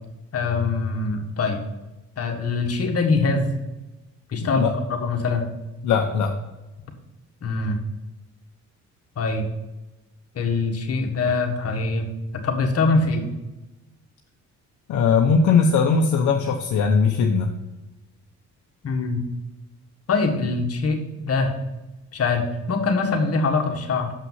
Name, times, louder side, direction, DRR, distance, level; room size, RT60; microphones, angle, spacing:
voice 1, 0.3-1.6 2.2-3.5 4.3-5.5 7.4-7.8 9.2-9.5 10.4-12.1 12.3-13.3 18.8-19.2 20.1-21.6 22.1-24.1, left 3 dB, 50° left, 3 dB, 1.6 m, -23 dB
voice 2, 5.8-6.4 14.9-17.5, left 5 dB, 70° left, 2 dB, 0.9 m, -19 dB
6.9 x 5.7 x 5.5 m, 1.0 s
cardioid pair, 90°, 30 cm